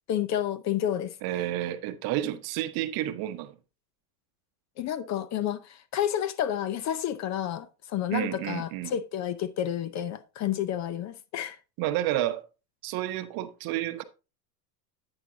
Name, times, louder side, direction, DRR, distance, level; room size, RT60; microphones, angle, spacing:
voice 1, 0.1-1.2 4.8-11.6, left 10 dB, 35° left, 0.6 m, -30 dB
voice 2, 1.2-3.5 8.1-8.9 11.8-12.4 12.8-14.0, right 13 dB, 45° right, 1.0 m, -30 dB
9.8 x 8.9 x 2.7 m
supercardioid pair, 115°, 49 cm